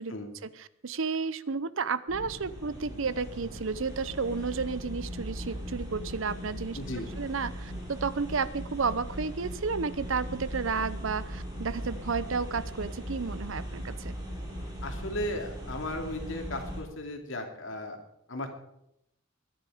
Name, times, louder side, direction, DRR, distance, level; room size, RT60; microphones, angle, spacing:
voice 1, 0.4-6.8 7.2-14.1, right 5 dB, 65° right, 16 dB, 0.7 m, -32 dB
sound 1, 2.1-16.8, equal, 20° right, 4.8 m, -39 dB
voice 2, 6.8-7.1 14.8-18.0 18.3-18.5, left 1 dB, 65° left, 3 dB, 2.6 m, -36 dB
22.0 x 10.0 x 5.0 m, 0.80 s
head